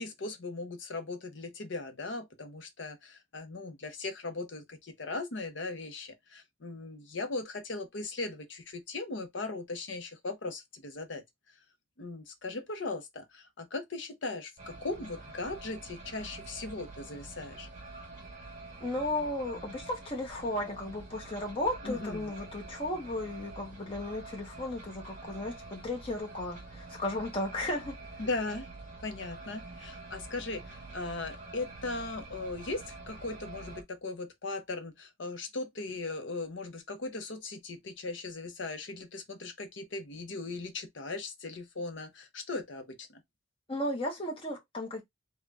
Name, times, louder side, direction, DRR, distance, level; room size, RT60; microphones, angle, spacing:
voice 1, 0.0-11.2 12.0-17.7 21.8-22.3 28.2-28.7 29.0-43.2, left 3 dB, 60° left, 0.7 m, -38 dB
sound 1, 14.6-33.8, right 3 dB, 35° right, 0.9 m, -47 dB
voice 2, 18.8-28.0 43.7-45.0, left 1 dB, 25° left, 0.9 m, -35 dB
3.7 x 2.2 x 3.2 m
head